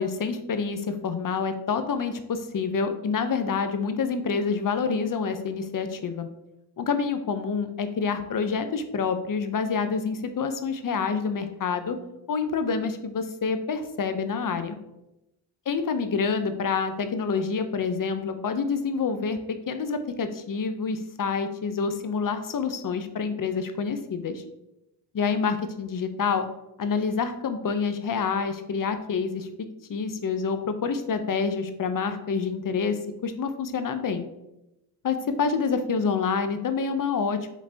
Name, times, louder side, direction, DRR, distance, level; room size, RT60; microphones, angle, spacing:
voice 1, 0.0-6.3 6.8-12.0 12.3-14.8 15.7-19.4 19.7-24.4 25.1-26.5 26.8-29.5 29.9-34.3 35.0-37.5, left 5 dB, 50° left, 9 dB, 0.6 m, -27 dB
5.1 x 3.3 x 2.7 m, 0.91 s
cardioid pair, 55°, 42 cm